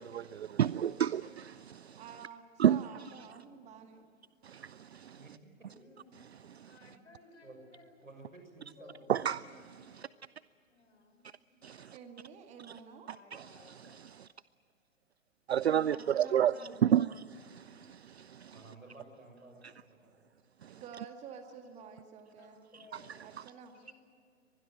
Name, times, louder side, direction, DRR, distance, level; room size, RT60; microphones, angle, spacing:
voice 1, 0.0-2.0 2.6-2.8 4.4-5.2 9.1-9.4 10.0-10.1 11.6-11.9 15.5-18.6 20.6-20.8, right 10 dB, 55° right, 0.5 m, -30 dB
voice 2, 2.0-4.1 11.9-13.1 15.6-17.0 20.7-22.6 23.2-23.8, right 7 dB, 15° right, 2.0 m, -50 dB
voice 3, 5.7-8.0 8.8-10.1 10.7-11.3 11.8-11.9 13.1-14.0 22.4-23.2 23.7-23.9, left 3 dB, 60° left, 6.7 m, -59 dB
voice 4, 8.0-9.2 18.5-20.3, right 2 dB, 80° right, 7.2 m, -54 dB
24.5 x 20.5 x 7.6 m
figure-of-eight pair, 120°, 40 cm